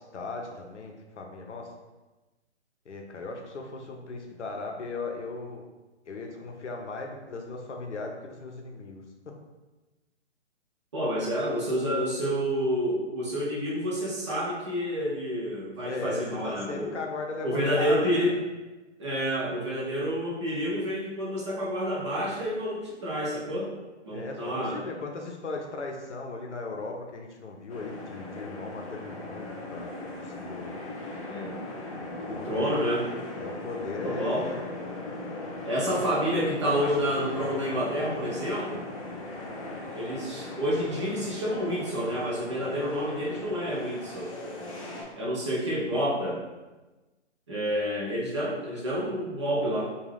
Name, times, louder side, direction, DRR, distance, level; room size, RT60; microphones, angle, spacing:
voice 1, 0.0-1.7 2.9-5.6 6.1-9.0 15.8-18.4 24.1-30.8 32.2-32.8 33.4-34.7, left 3 dB, 75° left, 2 dB, 0.6 m, -37 dB
voice 2, 10.9-17.0 17.4-18.4 19.0-23.7 24.0-24.8 31.2-31.6 32.3-33.1 34.0-34.5 35.6-38.8 39.9-44.3 45.1-46.4 47.5-49.9, equal, 25° right, -5 dB, 0.4 m, -29 dB
sound 1, 27.7-45.0, left 2 dB, 30° left, 0.5 m, -39 dB
2.4 x 2.3 x 3.3 m, 1.1 s
figure-of-eight pair, 135°, 35 cm